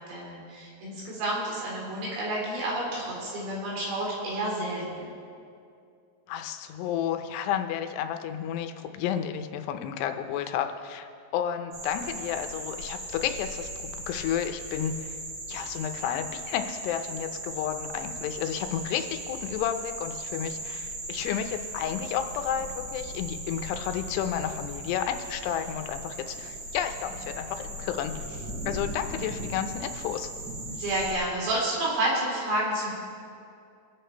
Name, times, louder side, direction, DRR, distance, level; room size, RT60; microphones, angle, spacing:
voice 1, 0.1-5.1 30.8-32.9, right 1 dB, 85° right, -4 dB, 5.6 m, -30 dB
voice 2, 6.3-15.2 15.5-30.3, left 9 dB, 80° left, 7 dB, 2.8 m, -32 dB
sound 1, 11.7-31.1, right 1 dB, 65° right, 6.5 m, -38 dB
24.0 x 8.5 x 4.5 m, 2.4 s
omnidirectional pair, 4.9 m